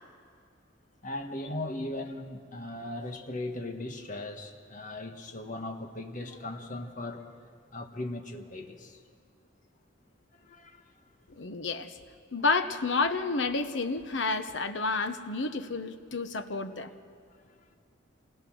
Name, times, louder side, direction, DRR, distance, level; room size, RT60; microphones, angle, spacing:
voice 1, 1.0-7.3 7.7-9.0 10.5-10.8, left 1 dB, 40° left, 4 dB, 1.6 m, -38 dB
voice 2, 11.4-12.0 12.3-16.9, left 3 dB, 65° left, 9 dB, 1.1 m, -30 dB
27.0 x 20.5 x 6.3 m, 2.1 s
head